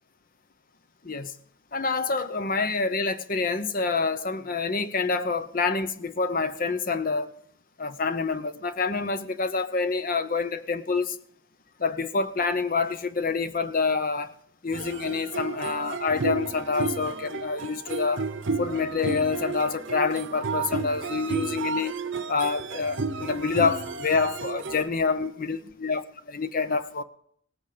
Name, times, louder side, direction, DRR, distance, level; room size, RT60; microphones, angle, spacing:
voice 1, 1.7-7.3 7.8-11.2 11.8-14.3 14.6-18.2 18.6-21.9 22.3-27.0, left 4 dB, 45° left, 0.7 m, -27 dB
sound 1, 14.7-24.9, right 4 dB, 75° right, 0.7 m, -32 dB
18.0 x 8.0 x 5.0 m
head